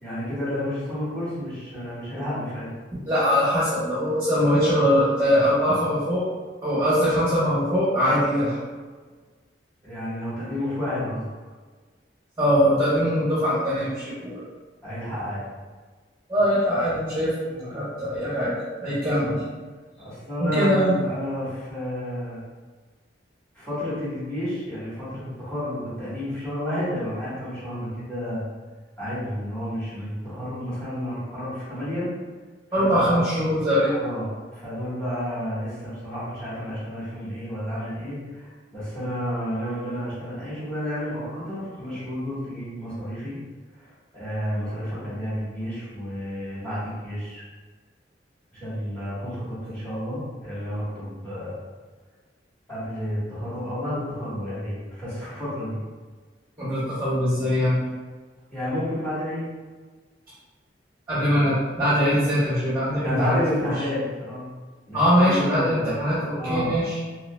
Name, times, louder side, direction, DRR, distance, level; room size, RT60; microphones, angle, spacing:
voice 1, 0.0-2.7 9.8-11.3 14.8-15.4 17.5-17.7 20.0-22.4 23.5-28.4 29.0-32.1 32.8-33.2 33.7-43.4 43.7-47.4 48.5-51.5 52.7-55.8 58.5-59.5 63.0-64.5 64.9-65.9 66.4-66.7, left 1 dB, 5° left, -10 dB, 1.3 m, -31 dB
voice 2, 3.1-6.2 6.6-8.6 12.4-14.4 16.3-17.3 17.6-18.5 18.8-19.4 20.4-20.9 32.7-34.0 56.6-57.8 61.1-63.4 64.9-67.0, equal, 15° right, -11 dB, 1.0 m, -22 dB
3.8 x 2.8 x 2.2 m, 1.4 s
head